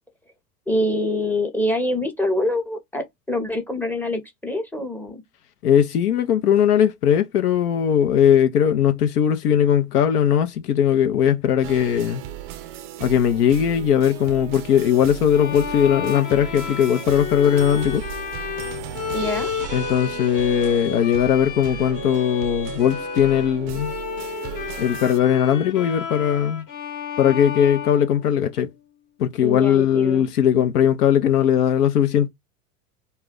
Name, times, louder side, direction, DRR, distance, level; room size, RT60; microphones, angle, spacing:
voice 1, 0.7-5.2 19.1-19.5 29.4-30.3, left 1 dB, 5° left, 0.6 m, -25 dB
voice 2, 5.6-12.2 13.0-18.0 19.7-23.9 24.8-26.6 27.2-28.7 29.2-32.3, left 9 dB, 80° left, 0.6 m, -19 dB
sound 1, 11.6-25.2, right 12 dB, 40° right, 0.4 m, -35 dB
Bowed string instrument, 15.3-28.7, left 7 dB, 45° left, 1.0 m, -32 dB
2.3 x 2.1 x 3.6 m
hypercardioid pair, 95°, 45 cm